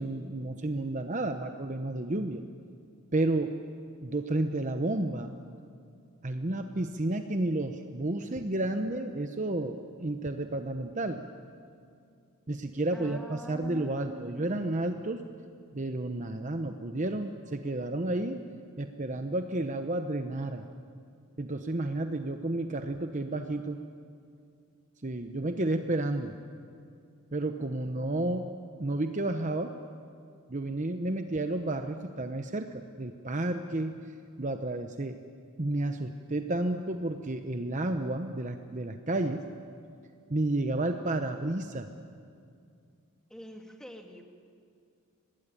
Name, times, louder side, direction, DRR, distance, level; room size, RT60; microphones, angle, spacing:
voice 1, 0.0-2.4 3.1-3.5 4.0-5.4 6.2-11.3 12.5-15.2 15.7-18.4 18.8-20.6 21.4-23.8 25.0-26.3 27.3-28.5 28.8-29.7 30.5-34.0 34.4-35.2 35.6-39.4 40.3-41.9, right 2 dB, 35° right, 7 dB, 0.9 m, -31 dB
voice 2, 12.9-14.5 43.3-44.2, equal, 5° left, 3 dB, 2.2 m, -46 dB
25.0 x 19.5 x 10.0 m, 2.4 s
head